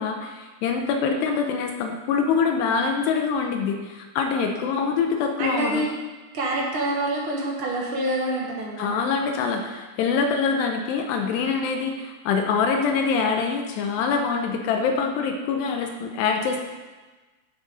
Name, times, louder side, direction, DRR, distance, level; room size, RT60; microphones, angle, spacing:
voice 1, 0.0-5.8 8.8-16.6, left 5 dB, 80° left, 3 dB, 2.9 m, -24 dB
voice 2, 4.3-4.7 5.4-5.9 6.3-9.0, right 1 dB, 65° right, -3 dB, 1.3 m, -27 dB
13.0 x 7.4 x 5.2 m, 1.2 s
omnidirectional pair, 5.0 m